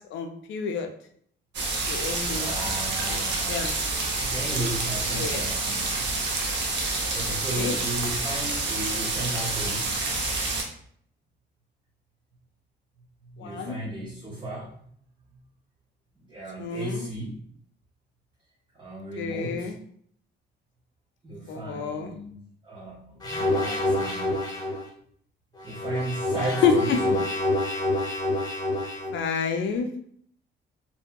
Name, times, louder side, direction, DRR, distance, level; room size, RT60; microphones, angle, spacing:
voice 1, 0.1-0.9 1.9-2.5 3.1-3.2 3.5-3.7 5.1-5.5 7.3-7.8 13.4-13.8 16.6-17.1 19.2-19.7 21.5-22.1 26.6-26.7 29.1-29.9, left 7 dB, 70° left, 5 dB, 0.4 m, -29 dB
sound 1, 1.5-10.6, right 3 dB, 60° right, 0.7 m, -28 dB
voice 2, 2.2-3.7 4.2-6.1 7.1-10.0 13.2-14.7 15.3-15.4 16.2-17.4 18.7-19.7 21.2-22.3 22.6-24.6 25.6-27.0, right 1 dB, 25° right, -3 dB, 0.6 m, -35 dB
sound 2, 23.2-24.8 25.6-29.2, left 1 dB, 20° left, 0.8 m, -27 dB
2.7 x 2.6 x 2.2 m, 0.64 s
cardioid pair, 90°, 20 cm